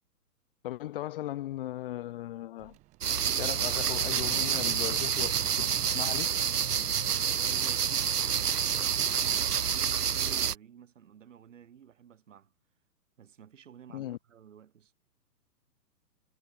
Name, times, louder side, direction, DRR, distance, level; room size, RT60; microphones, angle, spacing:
voice 1, 0.6-2.8 3.4-6.4 13.9-14.2, left 14 dB, 35° left, 2.5 m, -38 dB
sound 1, 2.6-9.0, right 19 dB, 15° right, 1.3 m, -51 dB
sound 2, 3.0-10.5, right 8 dB, 75° right, 0.7 m, -28 dB
voice 2, 7.4-12.5 13.2-14.9, right 8 dB, 50° right, 5.1 m, -53 dB
figure-of-eight pair, 125°, 47 cm